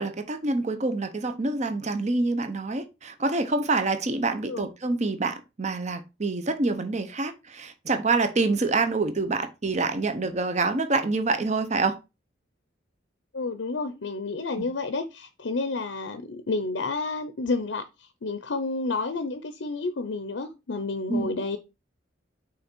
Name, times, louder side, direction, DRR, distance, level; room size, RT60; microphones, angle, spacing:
voice 1, 0.0-12.0 14.6-14.7 21.1-21.3, right 3 dB, 35° right, 0.7 m, -26 dB
voice 2, 13.3-21.6, left 3 dB, 75° left, 0.6 m, -30 dB
5.7 x 3.9 x 4.4 m
head